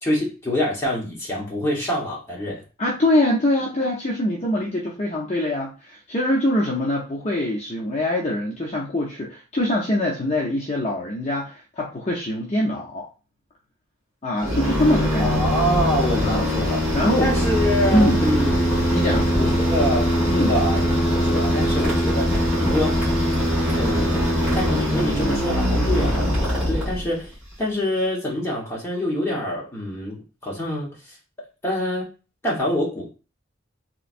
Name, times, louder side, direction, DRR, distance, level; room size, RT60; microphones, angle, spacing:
voice 1, 0.0-2.6 15.2-16.8 17.2-18.6 19.4-23.0 23.7-27.3 27.6-30.9 31.6-32.1 32.4-33.1, left 1 dB, 10° left, -4 dB, 1.1 m, -26 dB
voice 2, 2.8-13.1 14.2-15.5 16.2-16.5 16.9-17.3 17.9-18.2 18.9-19.3 20.3-20.5, left 1 dB, 35° left, -4 dB, 0.6 m, -23 dB
sound 1, 14.4-27.3, equal, 5° right, 1.9 m, -21 dB
3.2 x 3.0 x 2.5 m, 0.32 s
head